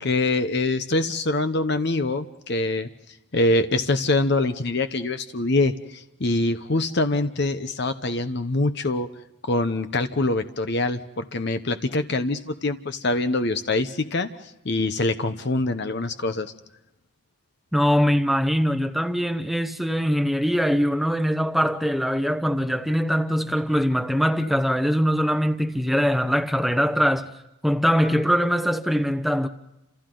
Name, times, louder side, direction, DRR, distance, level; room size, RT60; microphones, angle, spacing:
voice 1, 0.0-2.9 3.3-9.1 9.5-14.3 14.6-16.5, left 2 dB, 50° left, 0.9 m, -24 dB
voice 2, 17.7-27.3 27.6-29.5, equal, ahead, 0.9 m, -22 dB
30.0 x 27.5 x 3.9 m
head